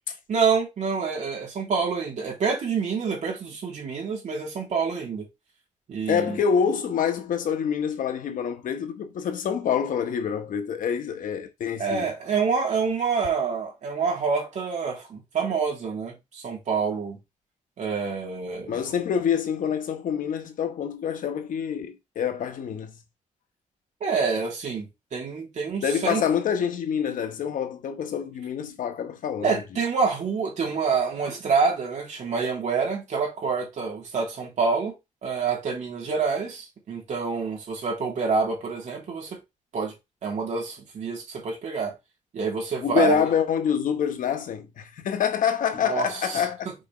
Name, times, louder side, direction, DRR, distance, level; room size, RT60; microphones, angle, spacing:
voice 1, 0.3-5.2 5.9-6.4 11.8-17.2 17.8-18.8 24.0-26.2 29.4-34.9 35.2-39.4 39.7-39.9 40.2-41.9 42.3-43.3 45.8-46.1, right 5 dB, 60° right, 3.4 m, -27 dB
voice 2, 6.1-12.1 18.7-23.0 25.8-29.6 42.8-46.7, left 8 dB, 85° left, 1.2 m, -26 dB
6.5 x 4.8 x 3.2 m
wide cardioid pair, 170°, 14 cm